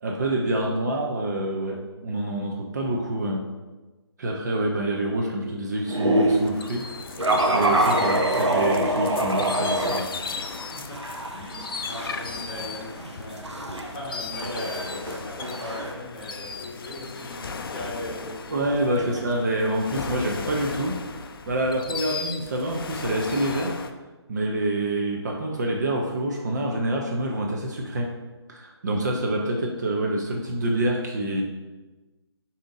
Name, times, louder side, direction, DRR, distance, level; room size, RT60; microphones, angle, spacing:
voice 1, 0.0-3.5 4.2-6.9 7.5-10.2 18.5-21.0 21.5-23.8 24.3-28.1 28.5-31.4, right 1 dB, 40° right, 0 dB, 0.5 m, -27 dB
sound 1, 5.9-6.5 7.2-10.0 10.4-15.9, right 1 dB, 90° right, 0.7 m, -25 dB
sound 2, 6.3-23.9, left 5 dB, 55° left, 0.4 m, -36 dB
voice 2, 10.7-13.5 13.8-18.6 19.0-19.4 28.9-29.1, left 1 dB, 20° left, -6 dB, 1.3 m, -39 dB
5.1 x 2.8 x 3.6 m, 1.2 s
figure-of-eight pair, 150°, 14 cm